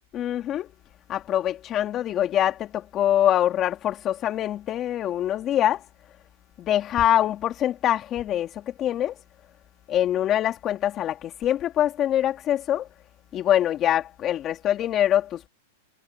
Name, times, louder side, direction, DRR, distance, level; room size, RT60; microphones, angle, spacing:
voice 1, 0.1-0.7 1.1-5.9 6.6-9.2 9.9-12.9 13.3-15.5, left 11 dB, 30° left, 3.5 m, -24 dB
supercardioid pair, 145°, 0 cm